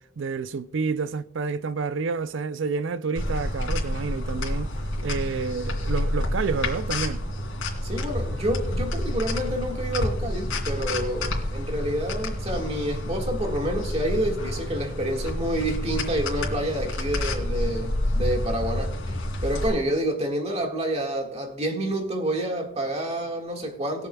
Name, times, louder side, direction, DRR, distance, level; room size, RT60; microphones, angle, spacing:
voice 1, 0.2-4.7 5.0-7.2, right 5 dB, 65° right, 0.5 m, -29 dB
sound 1, 3.2-19.7, left 1 dB, 75° left, 2.9 m, -29 dB
voice 2, 7.8-19.2 19.4-24.1, right 1 dB, 30° right, 1.7 m, -28 dB
21.0 x 7.0 x 2.3 m
head